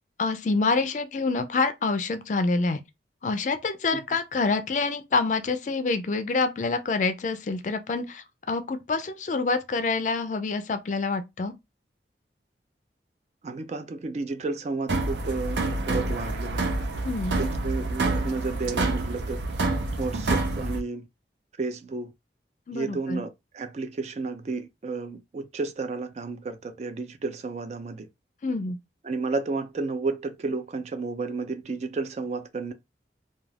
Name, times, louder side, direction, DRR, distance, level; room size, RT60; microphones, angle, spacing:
voice 1, 0.2-2.8 3.2-11.5 17.0-17.4 22.7-23.2 28.4-28.8, left 3 dB, 45° left, 0.4 m, -27 dB
voice 2, 13.4-16.7 17.4-19.4 20.0-21.1 21.6-22.1 22.7-28.1 29.0-32.7, right 3 dB, 40° right, 0.3 m, -32 dB
sound 1, 14.9-20.8, right 2 dB, 85° right, 0.6 m, -27 dB
2.3 x 2.3 x 3.2 m
head